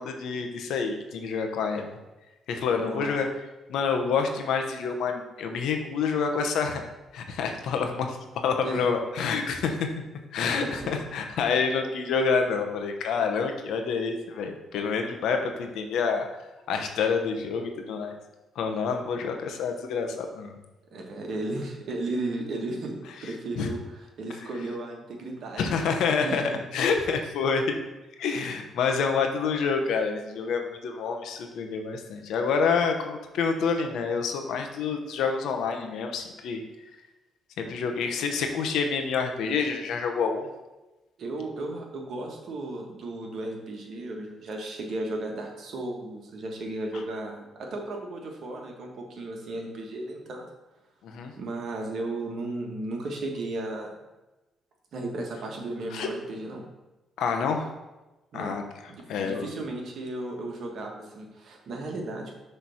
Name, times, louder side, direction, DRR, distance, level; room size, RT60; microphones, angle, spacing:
voice 1, 0.0-2.0 2.5-3.3 3.7-6.8 7.1-9.9 10.3-16.3 16.7-18.1 18.6-20.6 23.6-23.7 25.6-26.4 26.7-27.8 28.2-36.6 37.6-40.5 51.0-51.3 55.9-56.1 57.2-57.7 58.3-58.6 59.1-59.5, left 5 dB, 80° left, 5 dB, 0.8 m, -27 dB
voice 2, 2.8-3.1 8.6-8.8 10.4-10.9 20.9-25.8 26.2-26.6 41.2-50.4 51.4-53.9 54.9-56.6 58.3-62.4, right 2 dB, 65° right, 1 dB, 1.4 m, -35 dB
6.3 x 3.3 x 5.6 m, 1.1 s
cardioid pair, 90°, 0 cm